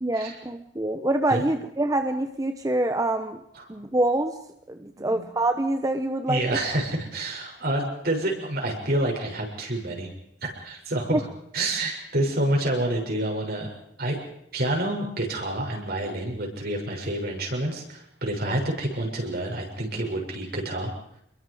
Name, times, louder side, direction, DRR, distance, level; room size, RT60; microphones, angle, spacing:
voice 1, 0.0-3.4 3.7-4.4 4.7-6.4 11.1-11.2 18.4-18.6, right 1 dB, 20° right, 7 dB, 1.0 m, -25 dB
voice 2, 5.0-5.3 6.3-10.1 10.4-11.2 11.5-13.7 14.0-14.2 14.5-20.9, right 1 dB, 60° right, 0 dB, 6.9 m, -28 dB
28.0 x 22.5 x 5.0 m, 0.76 s
head